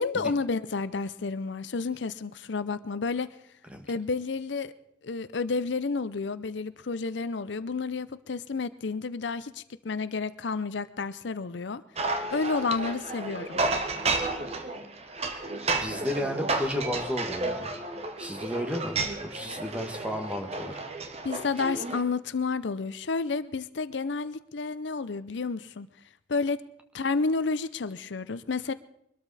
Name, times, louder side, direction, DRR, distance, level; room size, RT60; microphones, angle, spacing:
voice 1, 0.0-3.3 3.9-4.7 5.0-11.8 12.3-13.6 21.2-25.9 26.3-26.6 26.9-28.7, left 4 dB, 70° left, 14 dB, 0.6 m, -30 dB
sound 1, 12.0-22.0, right 3 dB, 35° right, 1.3 m, -32 dB
voice 2, 15.8-17.7 18.2-19.0 19.3-20.8, equal, 5° right, 5 dB, 1.5 m, -33 dB
23.0 x 13.0 x 4.1 m, 0.73 s
head